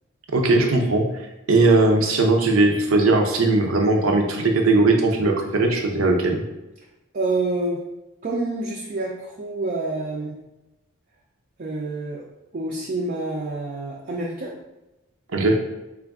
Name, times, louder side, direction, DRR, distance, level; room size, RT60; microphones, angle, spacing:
voice 1, 0.3-1.1 1.5-6.4 15.3-15.7, right 2 dB, 85° right, 3 dB, 0.6 m, -19 dB
voice 2, 7.1-7.8 8.2-10.4 11.6-12.2 12.5-14.5, right 2 dB, 45° right, -2 dB, 0.4 m, -27 dB
3.8 x 2.4 x 3.5 m, 1.0 s
head